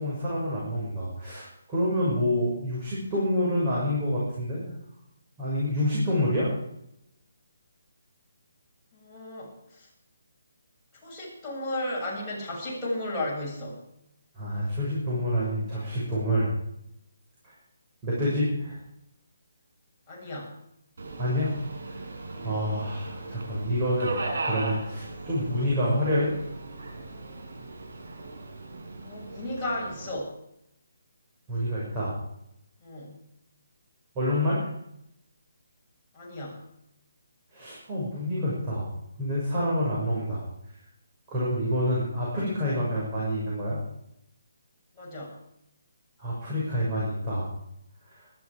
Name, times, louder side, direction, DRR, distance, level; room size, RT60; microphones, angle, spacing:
voice 1, 0.0-4.7 5.4-6.5 14.3-16.5 18.0-18.8 21.2-21.5 21.9-22.1 22.4-24.2 24.4-26.3 31.5-32.1 34.1-34.7 37.5-38.9 39.2-40.4 41.3-43.8 46.2-47.5 48.1-48.2, equal, 20° right, -7 dB, 6.5 m, -27 dB
voice 2, 8.9-9.9 11.0-13.8 20.1-20.5 22.3-22.6 29.0-30.3 32.8-33.2 36.1-36.6 44.9-45.3, left 1 dB, 10° left, -8 dB, 7.5 m, -34 dB
Subway metro underground, 21.0-30.1, right 2 dB, 65° right, 6.8 m, -38 dB
20.0 x 13.0 x 5.1 m, 0.79 s
hypercardioid pair, 165°, 0 cm